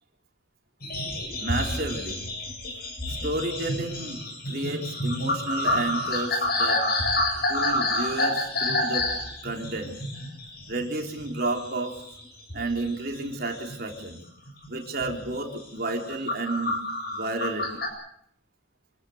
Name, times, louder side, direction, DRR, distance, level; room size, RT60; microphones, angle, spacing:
sound 1, 0.8-11.3 11.5-12.2 12.5-14.0 14.5-14.7 15.0-15.3 15.8-17.9, left 2 dB, 50° left, 7.6 m, -28 dB
voice 1, 1.4-2.2 3.1-6.8 7.5-9.1 9.4-10.0 10.7-12.0 12.5-14.2 14.7-16.7 17.1-17.8, right 2 dB, 50° right, 2 dB, 3.7 m, -31 dB
26.0 x 17.5 x 7.9 m, 0.71 s
head